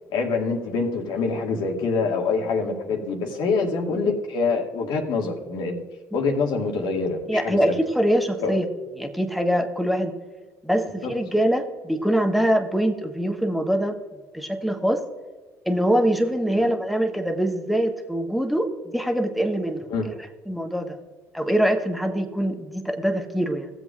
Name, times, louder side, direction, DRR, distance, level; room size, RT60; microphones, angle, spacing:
voice 1, 0.1-5.8 6.1-7.7 8.4-8.6 11.0-11.1 16.5-16.7 19.9-20.1, left 4 dB, 70° left, 2 dB, 2.0 m, -25 dB
voice 2, 7.3-8.6 9.0-10.1 10.6-14.0 14.3-15.0 15.7-20.1 20.5-21.0 21.3-23.7, equal, ahead, 4 dB, 1.4 m, -23 dB
16.0 x 7.7 x 2.5 m, 1.3 s
hypercardioid pair, 65°, 8 cm